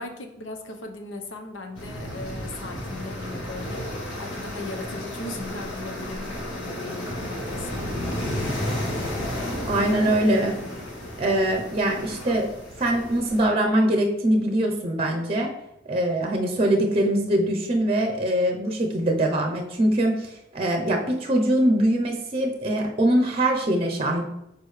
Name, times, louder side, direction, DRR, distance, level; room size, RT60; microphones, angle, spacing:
voice 1, 0.0-7.8, left 2 dB, 85° left, 4 dB, 0.9 m, -38 dB
sound 1, 1.7-13.5, left 1 dB, 70° left, 1.8 m, -32 dB
voice 2, 9.7-10.6 11.2-12.5 12.8-15.5 15.9-24.2, right 1 dB, 30° right, 2 dB, 0.6 m, -23 dB
6.6 x 4.8 x 3.2 m, 0.87 s
head